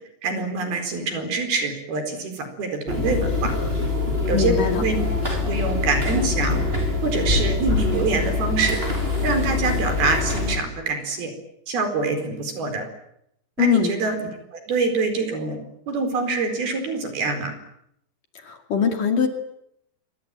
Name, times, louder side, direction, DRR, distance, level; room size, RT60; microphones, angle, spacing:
voice 1, 0.2-3.5 4.3-5.0 5.5-6.6 7.0-8.8 9.2-11.3 11.7-12.8 13.6-14.2 14.5-15.6 15.9-17.5, right 3 dB, 60° right, 7 dB, 6.2 m, -25 dB
sound 1, 2.9-10.6, left 3 dB, 10° right, 7.0 m, -24 dB
voice 2, 4.3-4.8 13.6-13.9 18.4-19.3, left 7 dB, 50° left, 5 dB, 3.7 m, -22 dB
27.0 x 24.0 x 9.0 m, 0.77 s
omnidirectional pair, 5.1 m